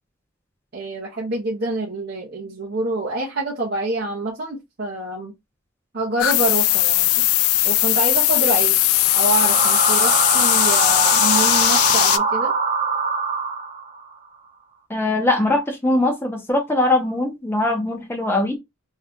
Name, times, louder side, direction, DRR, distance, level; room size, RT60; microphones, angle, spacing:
voice 1, 0.7-5.3 5.9-7.2 7.6-8.8 9.1-12.5, right 2 dB, 50° right, 0.8 m, -26 dB
sound 1, 6.2-12.2, left 14 dB, 90° left, 0.3 m, -18 dB
sound 2, 8.9-14.0, right 5 dB, 30° right, 0.4 m, -23 dB
voice 2, 14.9-18.6, left 2 dB, 10° left, 0.7 m, -21 dB
2.7 x 2.3 x 3.5 m
head